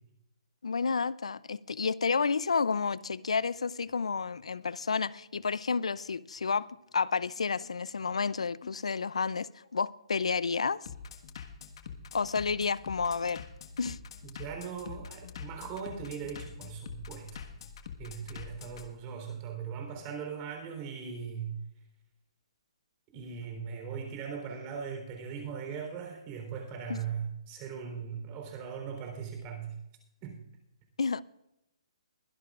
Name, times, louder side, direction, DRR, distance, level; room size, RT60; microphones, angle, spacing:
voice 1, 0.6-6.7 6.9-10.9 12.1-13.4 13.8-14.0 26.9-27.0 31.0-31.2, left 5 dB, 90° left, 0.5 m, -30 dB
Bass drum, 2.9-18.9, left 7 dB, 55° left, 1.5 m, -46 dB
voice 2, 14.2-17.5 18.0-21.6 23.1-29.8 30.2-30.4, right 7 dB, 25° right, 3.7 m, -39 dB
22.5 x 11.5 x 2.5 m
hypercardioid pair, 155°, 3 cm